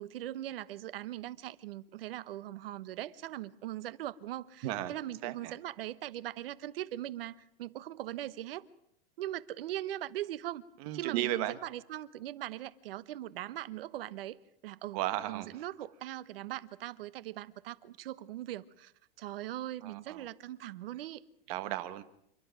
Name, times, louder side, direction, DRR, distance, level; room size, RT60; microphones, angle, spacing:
voice 1, 0.0-8.6 9.2-10.6 10.9-14.4 14.6-15.0 15.3-18.9 19.2-21.2, right 13 dB, 75° right, 1.2 m, -40 dB
voice 2, 4.6-4.9 5.2-5.5 10.8-11.6 14.9-15.5 19.8-20.3 21.5-22.0, right 14 dB, 40° right, 1.4 m, -35 dB
28.5 x 11.0 x 9.3 m
supercardioid pair, 175°, 29 cm